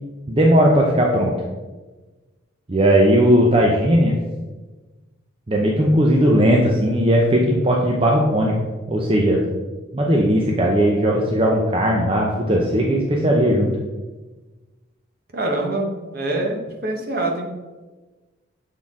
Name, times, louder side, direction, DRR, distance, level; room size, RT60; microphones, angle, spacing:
voice 1, 0.3-1.4 2.7-4.2 5.5-8.5 8.9-9.4 9.9-13.7, equal, 25° right, -1 dB, 0.6 m, -17 dB
voice 2, 15.3-17.5, right 2 dB, 50° right, 2 dB, 0.9 m, -25 dB
7.3 x 4.3 x 3.6 m, 1.2 s
head